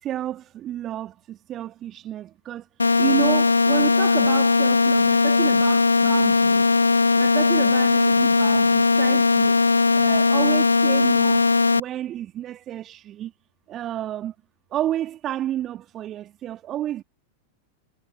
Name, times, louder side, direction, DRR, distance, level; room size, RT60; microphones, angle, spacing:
voice 1, 0.0-2.7 3.0-6.7 7.2-9.6 9.9-11.5 11.7-13.3 13.7-14.3 14.7-17.0, right 12 dB, 30° right, 2.1 m, -30 dB
sound 1, 2.8-11.8, left 4 dB, 80° left, 0.8 m, -18 dB
figure-of-eight pair, 90°, 0 cm